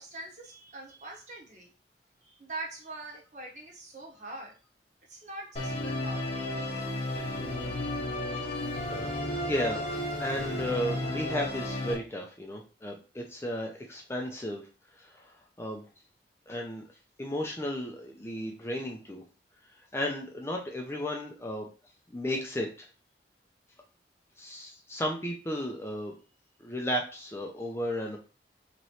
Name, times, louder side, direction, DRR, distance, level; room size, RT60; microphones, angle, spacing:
voice 1, 0.0-1.7 2.2-4.6 5.1-6.5, right 2 dB, 40° right, -2 dB, 1.2 m, -43 dB
Musical instrument, 5.6-12.0, left 1 dB, 35° left, 0.9 m, -33 dB
voice 2, 8.7-9.1 9.4-14.6 15.0-15.8 16.5-16.8 17.2-19.2 19.9-21.7 22.1-22.9 24.4-26.1 26.6-28.2, equal, 15° left, 0 dB, 0.5 m, -34 dB
4.1 x 3.0 x 3.1 m, 0.34 s
head